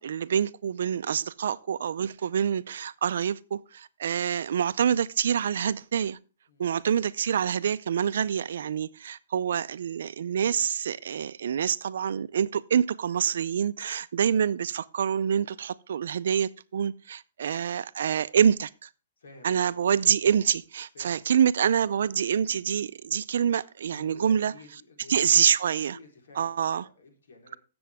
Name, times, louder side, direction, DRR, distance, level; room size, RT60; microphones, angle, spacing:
voice 1, 0.0-6.2 6.6-18.9 19.4-24.5 25.1-26.0 26.4-26.8, right 8 dB, 60° right, 0.5 m, -26 dB
voice 2, 6.5-6.8 19.2-19.7 20.9-21.2 23.9-25.4 25.9-27.6, left 3 dB, 85° left, 3.7 m, -51 dB
15.0 x 7.0 x 3.5 m
hypercardioid pair, 180°, 0 cm